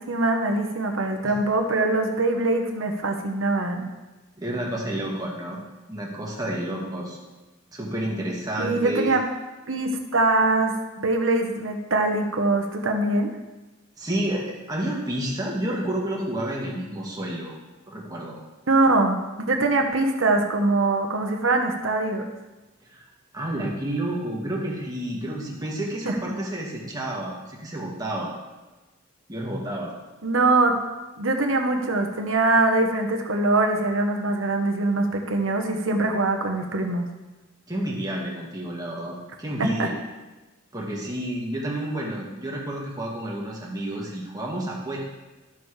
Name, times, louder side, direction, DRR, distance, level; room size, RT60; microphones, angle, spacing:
voice 1, 0.0-3.9 8.6-9.2 9.7-13.3 18.7-19.2 19.5-22.3 26.1-26.2 30.2-30.8 31.2-37.1 39.6-39.9, right 2 dB, 70° right, 4 dB, 1.1 m, -23 dB
voice 2, 4.4-5.6 5.9-7.2 7.7-9.1 14.0-17.5 17.9-18.4 22.9-23.0 23.3-28.4 29.3-29.9 37.7-39.9 40.7-45.0, right 1 dB, 20° right, -3 dB, 1.8 m, -30 dB
13.0 x 6.8 x 3.3 m, 1.1 s
head